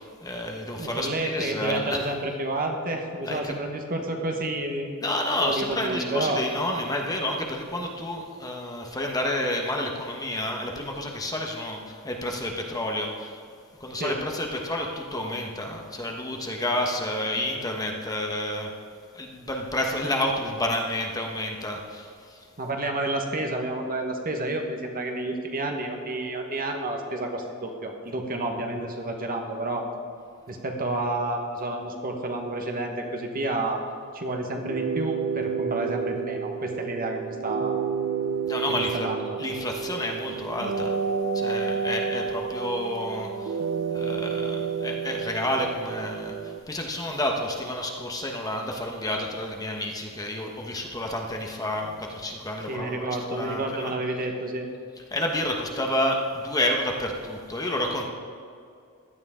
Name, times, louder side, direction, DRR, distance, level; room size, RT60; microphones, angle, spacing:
voice 1, 0.0-2.1 3.2-3.5 5.0-13.4 13.8-18.7 19.1-22.4 38.5-39.1 39.4-40.9 41.3-43.6 43.9-53.9 55.1-58.1, left 1 dB, 15° left, 1 dB, 1.2 m, -30 dB
voice 2, 0.8-5.1 5.4-6.4 13.9-14.2 22.6-29.9 30.5-33.8 34.1-37.8 38.7-39.4 52.7-54.7, right 2 dB, 40° right, 3 dB, 1.4 m, -30 dB
sound 1, 34.6-46.6, right 6 dB, 75° right, 0.6 m, -30 dB
16.5 x 12.0 x 3.7 m, 2.4 s
head